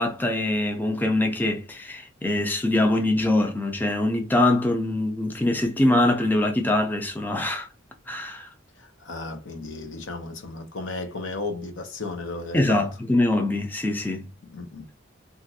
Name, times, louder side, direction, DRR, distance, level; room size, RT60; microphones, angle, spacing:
voice 1, 0.0-7.7 8.1-8.5 12.5-14.3, left 1 dB, 10° left, 0.3 m, -23 dB
voice 2, 8.8-12.9 14.5-14.9, left 3 dB, 85° left, 0.8 m, -34 dB
2.9 x 2.5 x 2.6 m
head